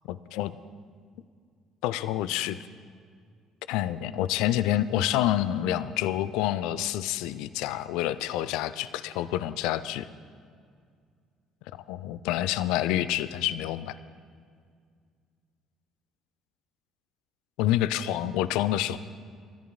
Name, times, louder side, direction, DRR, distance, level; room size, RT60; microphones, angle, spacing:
voice 1, 0.0-0.6 1.8-2.7 3.7-10.1 11.9-14.0 17.6-19.0, left 12 dB, 65° left, 15 dB, 0.4 m, -28 dB
28.5 x 14.0 x 2.2 m, 2.1 s
figure-of-eight pair, 50°, 0 cm